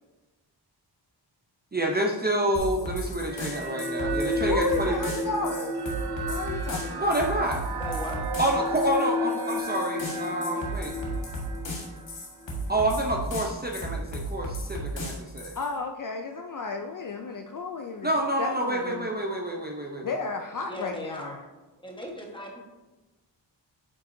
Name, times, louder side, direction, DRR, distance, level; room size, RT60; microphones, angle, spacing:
voice 1, 1.7-5.0 7.0-7.6 8.4-10.9 12.7-15.6 18.0-20.2, right 1 dB, 20° right, 1 dB, 0.6 m, -28 dB
sound 1, 2.5-15.7, right 1 dB, 85° left, 1.7 m, -35 dB
sound 2, 3.3-12.8, equal, 60° right, 0.8 m, -32 dB
voice 2, 4.5-5.8 6.3-7.2 15.5-18.1 18.4-19.1 20.0-21.4, left 4 dB, 50° left, 5 dB, 0.5 m, -33 dB
voice 3, 7.8-8.2 20.6-21.5 21.8-22.6, equal, 10° left, -1 dB, 1.3 m, -38 dB
9.1 x 5.5 x 2.7 m, 1.2 s
wide cardioid pair, 135°, 43 cm